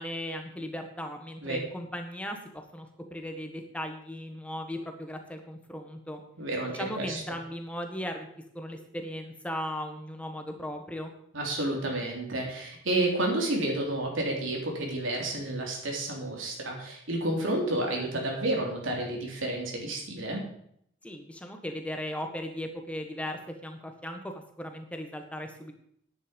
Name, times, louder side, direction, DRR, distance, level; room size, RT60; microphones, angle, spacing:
voice 1, 0.0-2.4 2.7-6.2 6.7-8.3 8.5-11.1 21.0-25.7, equal, 5° left, 5 dB, 1.4 m, -37 dB
voice 2, 6.4-7.2 11.3-20.4, right 1 dB, 70° right, 0 dB, 3.4 m, -30 dB
11.0 x 10.0 x 5.3 m, 0.69 s
head